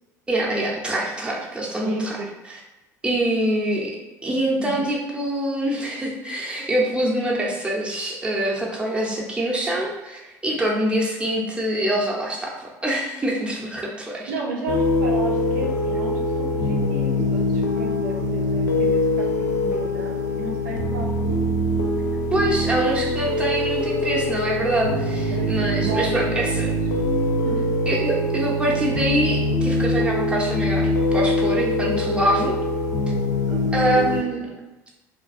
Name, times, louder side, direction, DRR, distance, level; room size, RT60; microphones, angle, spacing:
voice 1, 0.3-2.2 3.0-14.3 22.3-26.7 27.9-32.5 33.7-34.4, right 1 dB, 10° right, -3 dB, 0.6 m, -25 dB
voice 2, 1.8-2.3 4.6-4.8 14.3-21.1 25.3-26.8 27.4-27.6 33.5-34.0, right 3 dB, 75° right, -1 dB, 0.4 m, -33 dB
sound 1, 14.7-34.2, left 1 dB, 85° left, 0.4 m, -23 dB
2.4 x 2.3 x 2.5 m, 1.1 s
hypercardioid pair, 65°, 10 cm